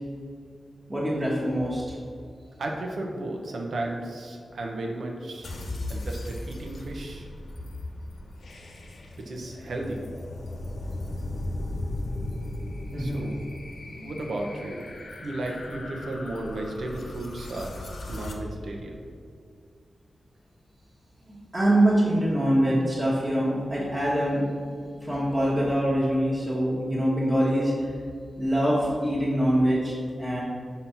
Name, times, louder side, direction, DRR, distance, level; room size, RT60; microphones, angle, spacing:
voice 1, 0.9-1.8 12.9-13.3 13.9-14.1 21.3-24.4 25.0-27.9 28.4-30.4, right 1 dB, 10° right, -9 dB, 1.3 m, -24 dB
voice 2, 2.6-5.5 5.9-7.3 9.2-10.0 13.0-13.4 14.0-14.8 15.2-17.8 18.1-19.0, right 2 dB, 80° right, 1 dB, 1.0 m, -34 dB
sound 1, 5.4-18.3, left 1 dB, 75° left, 0.8 m, -37 dB
5.9 x 4.3 x 5.8 m, 2.3 s
wide cardioid pair, 115°, 0 cm